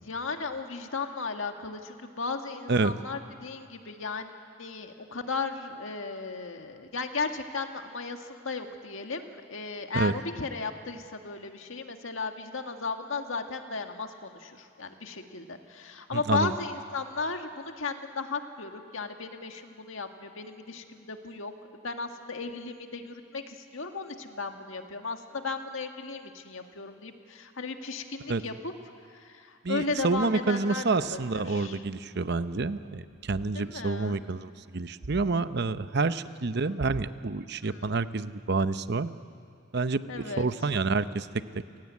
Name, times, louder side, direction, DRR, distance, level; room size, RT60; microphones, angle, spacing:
voice 1, 0.0-21.5 21.8-28.7 29.1-31.8 33.5-34.2 37.6-37.9 40.1-40.5, left 4 dB, 75° left, 5 dB, 1.8 m, -35 dB
voice 2, 16.1-16.5 28.3-28.4 29.6-39.1 39.7-41.3, right 3 dB, 55° right, 12 dB, 0.7 m, -28 dB
29.5 x 17.0 x 9.5 m, 2.4 s
head